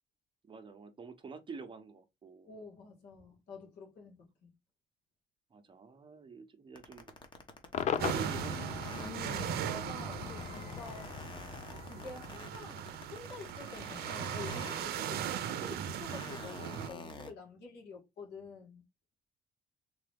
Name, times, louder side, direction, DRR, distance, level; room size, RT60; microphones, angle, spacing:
voice 1, 0.4-2.5 5.5-7.1 7.9-8.6, right 4 dB, 30° right, 0.8 m, -48 dB
voice 2, 2.5-4.5 9.0-11.1 11.8-18.8, left 3 dB, 85° left, 2.1 m, -48 dB
sound 1, 6.8-17.3, left 3 dB, 30° left, 1.1 m, -48 dB
Cheering / Crowd / Fireworks, 7.7-13.0, left 8 dB, 45° left, 0.5 m, -40 dB
sound 2, 8.0-16.9, right 9 dB, 70° right, 0.6 m, -39 dB
3.8 x 2.8 x 3.4 m
cardioid pair, 110°, 17 cm